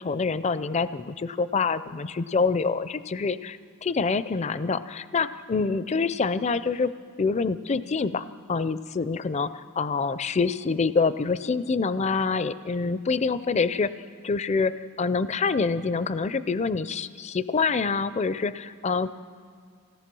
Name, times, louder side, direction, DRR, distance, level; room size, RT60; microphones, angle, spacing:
voice 1, 0.0-6.9 7.2-13.9 14.2-19.1, left 4 dB, 30° left, 14 dB, 0.4 m, -26 dB
26.0 x 17.0 x 6.1 m, 2.1 s
head